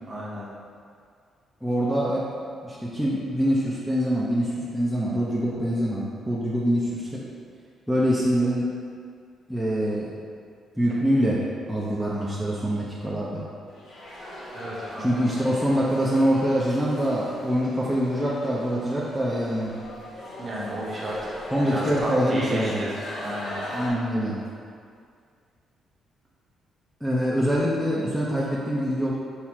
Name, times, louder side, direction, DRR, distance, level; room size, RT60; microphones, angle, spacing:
voice 1, 0.1-0.5 14.5-15.3 20.4-21.3 21.6-23.6, right 1 dB, 35° right, -6 dB, 0.9 m, -33 dB
voice 2, 1.6-2.3 2.6-7.2 7.9-8.7 9.5-10.2 10.8-13.5 15.0-19.7 21.5-22.9 23.7-24.4 27.0-29.1, equal, ahead, -7 dB, 0.5 m, -24 dB
sound 1, 13.7-23.9, left 1 dB, 60° left, 1.1 m, -39 dB
5.7 x 2.0 x 4.6 m, 2.2 s
cardioid pair, 140°, 0 cm